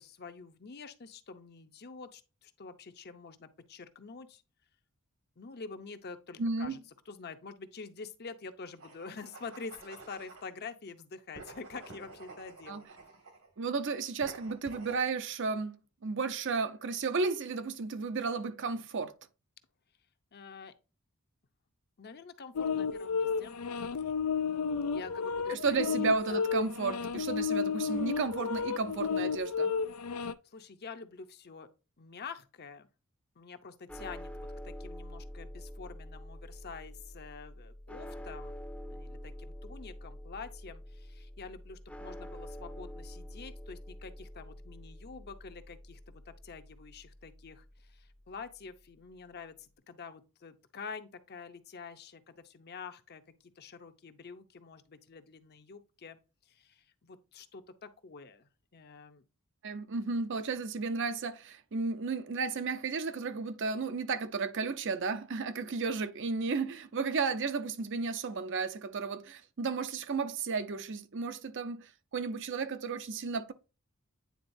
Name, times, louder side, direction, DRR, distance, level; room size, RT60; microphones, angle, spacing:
voice 1, 0.0-4.4 5.4-6.8 7.1-13.2 20.3-20.7 22.0-23.6 24.9-26.4 30.4-31.7 32.0-32.9 33.4-38.5 38.9-59.2, left 4 dB, 45° left, 0.7 m, -47 dB
voice 2, 6.4-6.8 12.7-12.8 13.6-19.1 25.5-29.7 59.6-73.5, right 4 dB, 60° right, 0.6 m, -33 dB
sound 1, 8.8-10.5 11.3-13.5 14.2-15.0, right 3 dB, 75° right, 2.0 m, -50 dB
sound 2, 22.5-30.3, left 6 dB, 90° left, 0.4 m, -32 dB
sound 3, 33.9-48.1, equal, 5° left, 0.6 m, -46 dB
9.4 x 3.9 x 2.6 m
head